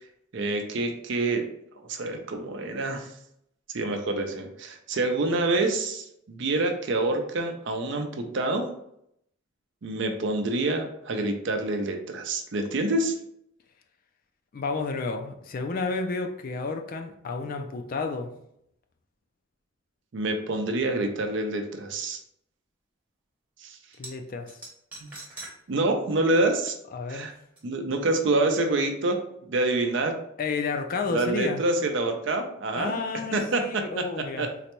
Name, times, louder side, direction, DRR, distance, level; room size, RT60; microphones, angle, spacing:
voice 1, 0.3-1.5 1.8-3.1 3.7-8.7 9.8-13.2 20.1-22.2 23.6-23.8 25.0-25.1 25.7-26.7 27.1-27.3 27.6-30.2 31.1-33.0 33.3-34.5, right 2 dB, 60° right, 5 dB, 0.5 m, -27 dB
voice 2, 14.5-18.3 24.0-24.6 26.9-27.3 30.4-31.6 32.7-34.5, left 4 dB, 45° left, 5 dB, 0.3 m, -31 dB
sound 1, 23.9-24.1 24.5-25.5 25.9-26.0 27.6-27.7, right 2 dB, 10° right, 0.8 m, -41 dB
3.9 x 2.2 x 2.9 m, 0.75 s
head